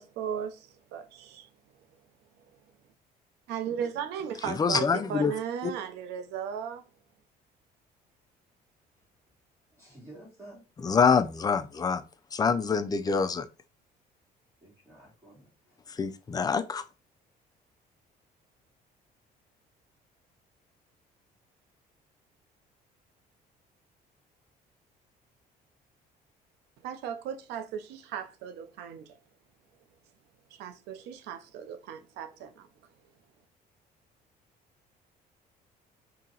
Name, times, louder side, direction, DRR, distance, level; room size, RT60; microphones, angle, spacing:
voice 1, 0.0-1.5 3.5-6.8 26.8-29.1 30.5-32.7, right 8 dB, 85° right, 0.6 m, -36 dB
voice 2, 4.4-5.7 10.8-12.0 12.3-13.5 16.0-16.8, left 5 dB, 20° left, 0.4 m, -26 dB
voice 3, 9.8-10.9 14.6-15.8, right 1 dB, 15° right, 1.7 m, -52 dB
2.8 x 2.8 x 3.8 m
cardioid pair, 110°, 17 cm